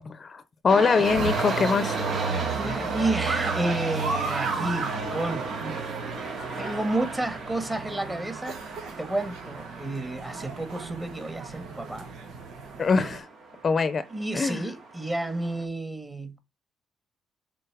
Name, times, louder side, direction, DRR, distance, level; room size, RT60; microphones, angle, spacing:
voice 1, 0.0-2.0 12.8-13.3 13.6-14.0 14.3-14.6, left 5 dB, 40° left, 0.7 m, -23 dB
sound 1, 0.7-15.6, right 3 dB, 60° right, 2.3 m, -35 dB
sound 2, 1.0-13.2, right 5 dB, 80° right, 1.6 m, -34 dB
voice 2, 2.5-6.1 6.6-12.1 14.1-16.4, right 2 dB, 15° right, 2.1 m, -31 dB
6.8 x 4.0 x 4.8 m
cardioid pair, 90°, 0 cm